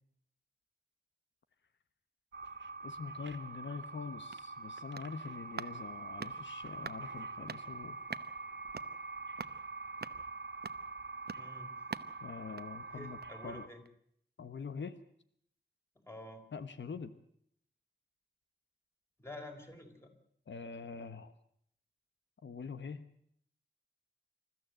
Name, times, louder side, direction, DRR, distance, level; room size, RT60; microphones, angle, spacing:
sound 1, 2.3-13.7, right 3 dB, 85° right, 2.0 m, -45 dB
voice 1, 2.8-8.0 12.2-13.2 13.4-13.7 14.4-15.0 16.5-17.1 20.5-21.3 22.4-23.0, left 5 dB, 90° left, 11 dB, 1.2 m, -44 dB
sound 2, 4.3-13.5 13.8-13.9, right 5 dB, 60° right, 0.8 m, -49 dB
voice 2, 11.4-11.7 12.9-13.8 16.1-16.4 19.2-20.1, left 1 dB, 15° left, 4 dB, 4.2 m, -48 dB
27.5 x 14.0 x 7.8 m, 0.67 s
wide cardioid pair, 115°, 18 cm